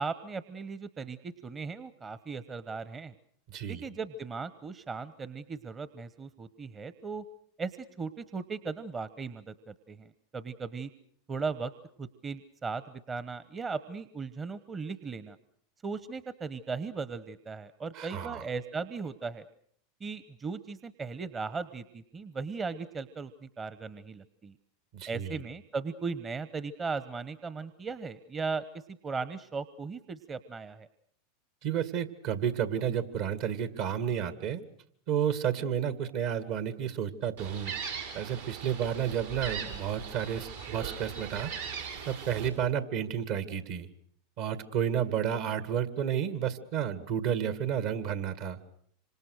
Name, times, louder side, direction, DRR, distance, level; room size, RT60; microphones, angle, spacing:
voice 1, 0.0-3.1 3.7-7.2 7.6-10.9 11.3-11.7 12.0-15.4 15.8-19.5 20.0-24.5 25.1-30.9, right 4 dB, 25° right, 14 dB, 1.1 m, -37 dB
voice 2, 3.5-3.8 18.0-18.4 24.9-25.4 31.6-34.6 35.1-37.7 38.1-41.5 42.1-43.9 44.4-48.6, right 9 dB, 60° right, 13 dB, 2.1 m, -31 dB
Gull seagull, 37.4-42.5, right 7 dB, 80° right, 6.4 m, -39 dB
26.5 x 26.0 x 6.6 m, 0.63 s
hypercardioid pair, 90°, 0 cm